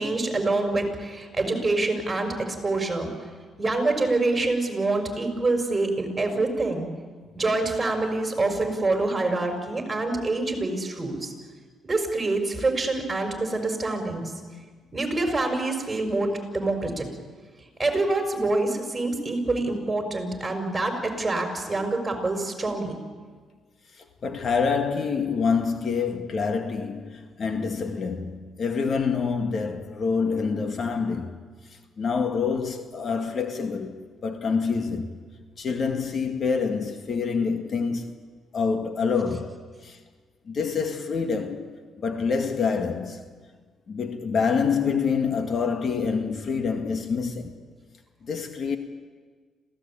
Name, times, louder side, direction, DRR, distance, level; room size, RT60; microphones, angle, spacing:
voice 1, 0.0-3.1 3.6-6.9 7.3-11.3 11.8-14.3 14.9-17.1 17.8-23.0, right 2 dB, 20° right, 5.9 m, -26 dB
voice 2, 24.0-31.4 31.7-35.1 35.6-38.1 38.5-40.0 40.5-43.2 43.9-47.6 48.2-48.8, left 5 dB, 50° left, 2.1 m, -27 dB
27.0 x 16.5 x 8.7 m
cardioid pair, 90°, 0 cm